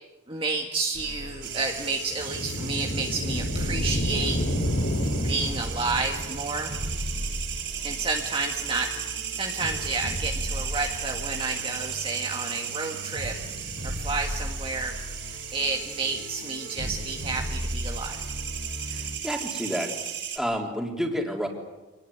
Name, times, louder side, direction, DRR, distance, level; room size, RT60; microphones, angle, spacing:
voice 1, 0.3-4.4 5.2-6.7 7.8-14.9 15.2-18.2, right 3 dB, 25° right, 1 dB, 1.7 m, -31 dB
sound 1, 0.9-19.2, equal, 85° right, 3.7 m, -36 dB
sound 2, 1.4-20.4, right 9 dB, 65° right, 5.7 m, -36 dB
sound 3, 2.1-5.9, equal, 65° left, 4.0 m, -29 dB
voice 2, 18.9-19.9 20.4-21.5, equal, ahead, 1 dB, 3.6 m, -29 dB
26.5 x 20.0 x 9.6 m, 1.1 s
head